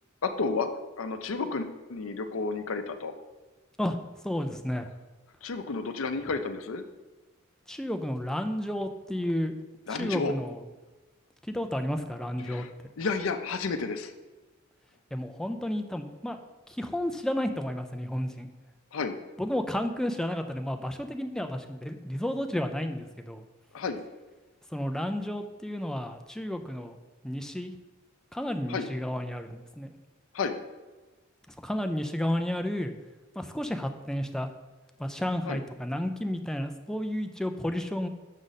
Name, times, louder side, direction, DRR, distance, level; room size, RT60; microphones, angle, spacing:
voice 1, 0.2-0.7 1.0-3.1 5.4-6.8 9.9-10.3 12.4-12.7 13.0-14.1 18.9-19.2 23.7-24.0 28.7-28.9 30.3-30.6 35.5-35.6, left 4 dB, 70° left, 8 dB, 0.6 m, -31 dB
voice 2, 4.2-4.9 7.7-9.5 9.9-10.6 11.4-12.6 15.1-16.4 16.7-18.5 19.4-23.4 24.7-27.0 27.2-27.7 28.3-29.9 31.6-32.9 33.4-34.5 35.0-38.1, left 1 dB, 5° left, 6 dB, 0.3 m, -32 dB
6.5 x 5.0 x 4.0 m, 1.2 s
head